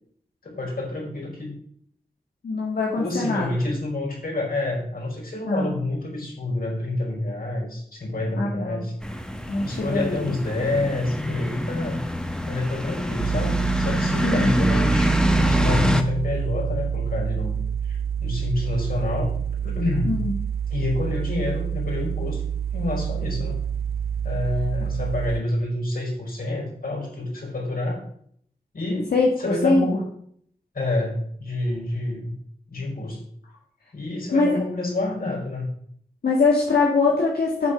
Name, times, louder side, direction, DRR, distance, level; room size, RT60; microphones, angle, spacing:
voice 1, 0.4-1.5 3.0-8.9 9.6-12.0 12.5-20.1 20.7-22.4 22.7-23.6 24.2-28.0 28.7-29.1 29.4-30.0 30.7-32.3 32.7-33.2 33.9-35.7, left 2 dB, 65° left, -1 dB, 4.8 m, -28 dB
voice 2, 2.4-3.5 5.4-5.7 8.4-8.8 9.5-10.3 14.2-14.6 20.0-20.3 29.1-29.3 29.6-29.8 34.3-34.5 36.2-37.7, left 3 dB, 90° left, -3 dB, 1.8 m, -22 dB
sound 1, 9.0-16.0, equal, 5° left, 1.2 m, -25 dB
sound 2, 13.2-25.4, right 8 dB, 75° right, 0.5 m, -28 dB
8.2 x 7.6 x 5.9 m, 0.66 s
cardioid pair, 45°, 16 cm